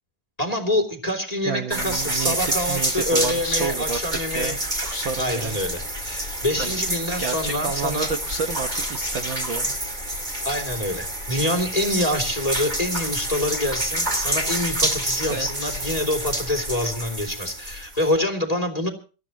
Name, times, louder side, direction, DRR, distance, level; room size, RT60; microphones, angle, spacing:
voice 1, 0.4-4.5 5.2-8.1 10.4-18.9, left 1 dB, 10° left, 7 dB, 2.5 m, -26 dB
voice 2, 1.5-4.6 4.8-5.6 6.6-6.7 7.2-9.7 15.3-15.8, right 4 dB, 65° right, 7 dB, 1.2 m, -30 dB
sound 1, 1.7-18.2, right 1 dB, 15° right, 2.1 m, -28 dB
26.5 x 14.5 x 3.0 m, 0.36 s
omnidirectional pair, 3.8 m